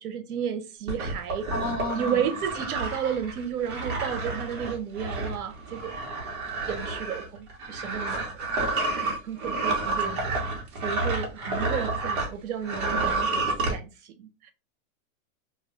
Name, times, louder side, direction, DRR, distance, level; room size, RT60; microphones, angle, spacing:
voice 1, 0.0-1.5 1.9-5.9 6.7-8.3 8.7-10.4 10.8-14.5, right 8 dB, 90° right, 0.6 m, -33 dB
sound 1, 0.9-12.3 12.6-13.7, right 3 dB, 35° right, 0.8 m, -30 dB
voice 2, 1.5-2.3 10.0-10.5, left 2 dB, 5° left, 0.5 m, -33 dB
2.1 x 2.0 x 3.5 m
supercardioid pair, 150°, 43 cm